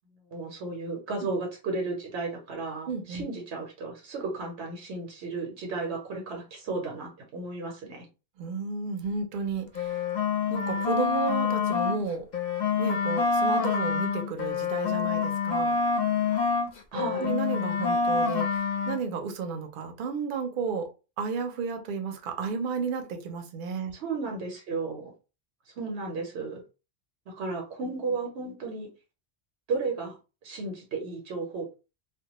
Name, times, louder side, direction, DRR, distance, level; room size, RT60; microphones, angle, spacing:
voice 1, 0.3-8.1 16.9-17.3 23.9-25.1 25.7-26.6 27.3-28.9 29.7-30.2 30.4-31.7, right 3 dB, 85° right, 1 dB, 1.0 m, -34 dB
voice 2, 2.9-3.2 8.4-10.0 10.5-12.3 12.8-15.8 16.9-20.9 21.2-23.9, right 5 dB, 60° right, 4 dB, 0.7 m, -32 dB
sound 1, 9.7-12.0 12.3-16.7 17.0-19.0, left 5 dB, 50° left, 0.6 m, -27 dB
2.2 x 2.1 x 2.9 m, 0.31 s
omnidirectional pair, 1.1 m